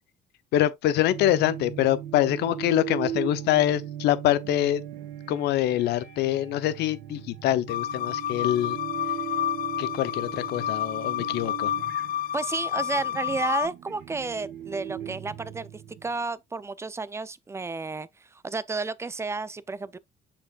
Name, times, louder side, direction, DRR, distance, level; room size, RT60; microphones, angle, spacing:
voice 1, 0.5-4.8 5.3-8.8 9.8-11.7, left 13 dB, 80° left, 0.8 m, -25 dB
sound 1, 1.1-16.2, right 11 dB, 75° right, 1.5 m, -39 dB
sound 2, 7.7-13.7, left 11 dB, 60° left, 0.4 m, -30 dB
voice 2, 12.3-20.0, right 3 dB, 15° right, 0.5 m, -32 dB
6.7 x 5.8 x 2.4 m
cardioid pair, 110°, 17 cm